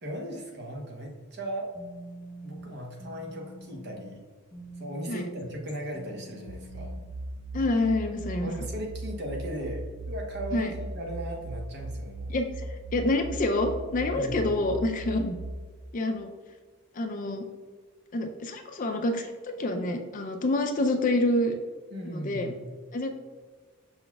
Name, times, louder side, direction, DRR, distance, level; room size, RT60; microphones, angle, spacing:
voice 1, 0.0-1.7 2.4-4.2 4.8-6.9 8.4-12.3 14.1-14.4 21.9-22.6, right 1 dB, 50° right, 1 dB, 0.8 m, -37 dB
sound 1, 1.7-7.2, right 1 dB, 15° left, 1.0 m, -45 dB
sound 2, 6.5-15.5, right 2 dB, 70° right, 0.5 m, -38 dB
voice 2, 7.5-8.5 10.5-10.7 12.3-15.4 15.9-16.3 17.0-17.4 18.1-21.6 22.0-22.5 22.9-23.1, left 2 dB, 35° left, 5 dB, 0.4 m, -27 dB
5.9 x 4.0 x 2.3 m, 1.5 s
head